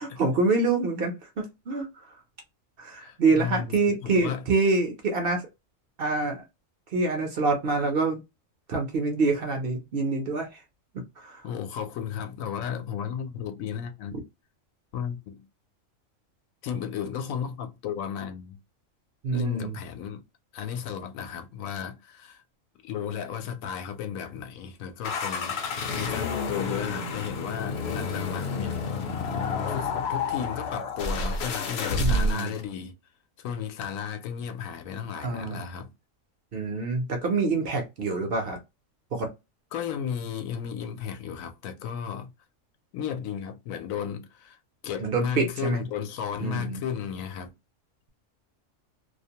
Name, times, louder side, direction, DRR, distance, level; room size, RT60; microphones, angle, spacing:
voice 1, 0.0-1.9 2.8-5.4 6.0-6.4 6.9-8.2 8.7-10.5 11.2-11.4 19.2-19.7 32.0-32.5 35.2-35.6 36.5-38.6 39.1-39.3 45.0-45.8 46.4-46.8, right 3 dB, 55° right, 0.7 m, -26 dB
voice 2, 3.0-4.5 11.4-14.3 14.9-15.4 16.6-18.6 19.3-20.2 20.5-22.4 22.8-25.6 25.9-28.8 29.7-32.9 33.4-35.9 39.7-42.3 42.9-44.6 44.8-47.5, left 8 dB, 85° left, 1.0 m, -34 dB
sound 1, 25.0-32.6, left 3 dB, 60° left, 0.8 m, -29 dB
2.5 x 2.1 x 2.7 m
omnidirectional pair, 1.4 m